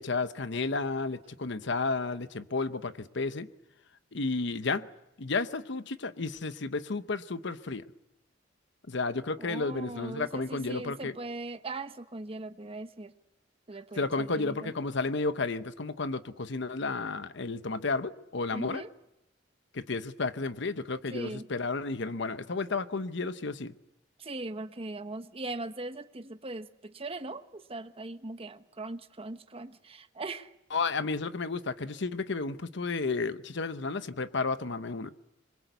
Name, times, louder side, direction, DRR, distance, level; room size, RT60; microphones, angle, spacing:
voice 1, 0.0-3.5 4.1-4.9 5.2-7.8 8.9-11.1 14.0-18.8 19.7-23.7 30.7-35.1, left 3 dB, 65° left, 12 dB, 0.9 m, -32 dB
voice 2, 9.4-13.1 13.7-14.7 18.5-18.9 21.1-21.5 24.2-30.5, right 2 dB, 30° right, 10 dB, 1.1 m, -40 dB
25.5 x 22.5 x 8.1 m, 0.91 s
head